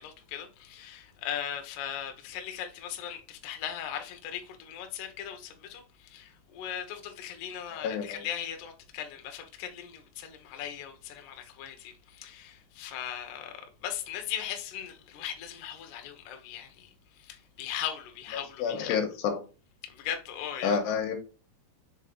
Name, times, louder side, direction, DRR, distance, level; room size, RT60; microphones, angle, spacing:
voice 1, 0.0-13.5 13.8-16.9 17.2-19.0 19.9-20.8, left 10 dB, 70° left, 1.9 m, -38 dB
voice 2, 7.7-8.3 18.6-19.4 20.6-21.1, left 6 dB, 90° left, 3.2 m, -29 dB
6.4 x 3.8 x 3.9 m
omnidirectional pair, 4.8 m